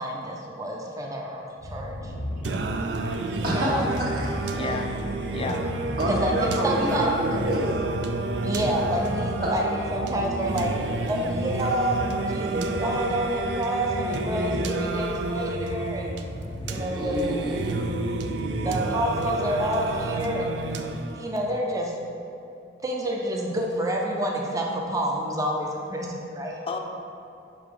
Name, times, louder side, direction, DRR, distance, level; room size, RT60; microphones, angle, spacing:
voice 1, 0.0-2.1 3.4-3.8 6.0-6.3 6.6-7.1 8.4-9.6 9.9-10.7 11.1-12.0 12.3-16.1 16.7-17.2 18.6-20.5 21.1-21.9 22.8-26.6, right 1 dB, 20° right, 0 dB, 0.5 m, -28 dB
Purr, 1.6-20.9, left 1 dB, 85° left, 1.0 m, -36 dB
Singing, 2.4-21.4, right 3 dB, 75° right, 0.4 m, -30 dB
voice 2, 3.4-4.6 6.0-7.7 9.4-9.5 16.9-17.8, equal, 55° right, -4 dB, 1.2 m, -27 dB
voice 3, 4.5-4.9 5.3-5.6 26.7-26.8, left 4 dB, 35° left, 3 dB, 0.5 m, -32 dB
5.7 x 5.1 x 3.7 m, 2.6 s
head